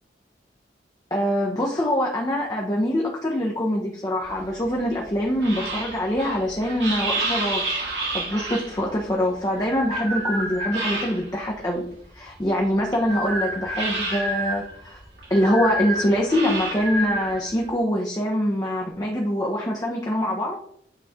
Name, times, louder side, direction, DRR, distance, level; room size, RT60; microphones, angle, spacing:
voice 1, 1.1-7.6 8.1-11.8 12.1-15.0 15.3-20.6, equal, 20° left, -2 dB, 0.7 m, -24 dB
sound 1, 4.2-11.5 11.9-17.7, right 2 dB, 75° right, 2.5 m, -29 dB
8.4 x 3.2 x 3.5 m, 0.67 s
head